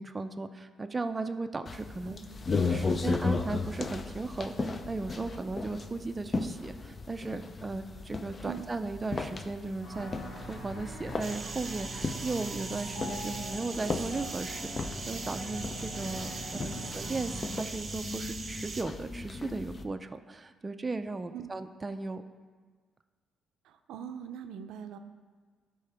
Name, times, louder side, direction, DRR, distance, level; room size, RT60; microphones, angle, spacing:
voice 1, 0.0-2.2 2.6-10.2 10.5-22.2, right 3 dB, 25° right, 8 dB, 0.4 m, -36 dB
sound 1, 1.7-19.8, left 3 dB, 35° left, 0.5 m, -36 dB
voice 2, 2.0-2.4 2.8-3.1 8.4-8.7 16.3-17.0 21.3-21.5 23.6-25.0, right 8 dB, 90° right, 8 dB, 0.4 m, -43 dB
sound 2, 9.8-17.4, right 1 dB, 75° left, 2.1 m, -43 dB
sound 3, 11.2-18.8, right 4 dB, 40° right, 0.8 m, -41 dB
12.5 x 4.6 x 3.4 m, 1.5 s
cardioid pair, 90°, 0 cm